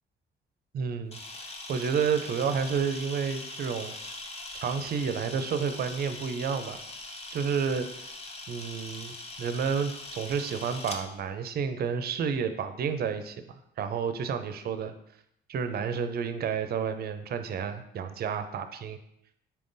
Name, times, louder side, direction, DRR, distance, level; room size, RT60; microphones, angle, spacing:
voice 1, 0.7-3.9 4.6-6.8 7.3-8.1 8.5-14.9 15.5-19.0, right 6 dB, 50° right, 9 dB, 0.4 m, -30 dB
Camera, 1.1-11.0, left 2 dB, 30° left, 0.6 m, -41 dB
4.4 x 3.6 x 2.6 m, 0.76 s
cardioid pair, 90°, 20 cm